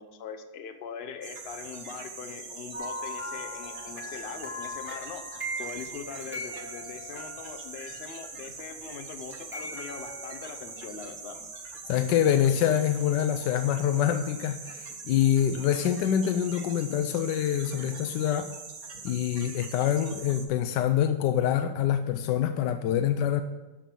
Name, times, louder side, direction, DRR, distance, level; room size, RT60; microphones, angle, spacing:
voice 1, 0.0-5.2 5.6-11.4, left 6 dB, 45° left, 7 dB, 0.9 m, -42 dB
sound 1, 1.2-20.5, right 4 dB, 55° right, 1.7 m, -43 dB
sound 2, 2.7-8.6 9.2-11.3 12.1-13.1 13.4-13.5, equal, 5° right, 2.0 m, -40 dB
voice 2, 11.9-18.5 19.0-23.4, left 10 dB, 75° left, 9 dB, 1.1 m, -25 dB
13.0 x 5.3 x 7.4 m, 1.2 s
omnidirectional pair, 2.0 m